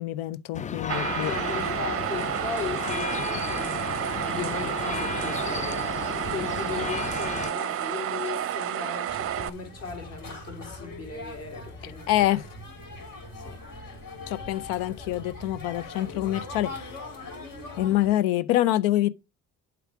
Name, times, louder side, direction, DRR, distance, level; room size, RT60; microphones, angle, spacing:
voice 1, 0.0-1.3 11.8-12.4 14.3-17.0 17.7-19.1, left 14 dB, 80° left, 0.6 m, -26 dB
sound 1, 0.5-7.5, left 7 dB, 20° left, 0.3 m, -34 dB
sound 2, 0.9-9.5, right 11 dB, 40° right, 0.6 m, -30 dB
voice 2, 1.2-3.8 4.2-5.8 6.3-12.3 13.4-13.6, left 5 dB, 40° left, 2.9 m, -37 dB
sound 3, 9.1-18.1, left 2 dB, 60° left, 4.4 m, -41 dB
8.0 x 4.8 x 4.8 m
hypercardioid pair, 65°, 37 cm